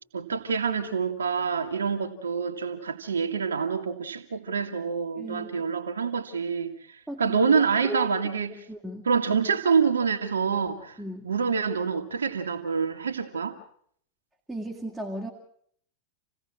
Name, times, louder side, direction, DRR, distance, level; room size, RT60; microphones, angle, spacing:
voice 1, 0.1-6.7 7.2-8.6 9.1-10.9 11.2-13.6, right 5 dB, 70° right, 2.0 m, -26 dB
voice 2, 5.2-5.5 7.1-7.5 7.8-8.1 8.7-9.1 11.0-11.3 14.5-15.3, right 1 dB, 5° right, 2.4 m, -35 dB
28.0 x 17.0 x 6.3 m
figure-of-eight pair, 90°, 0 cm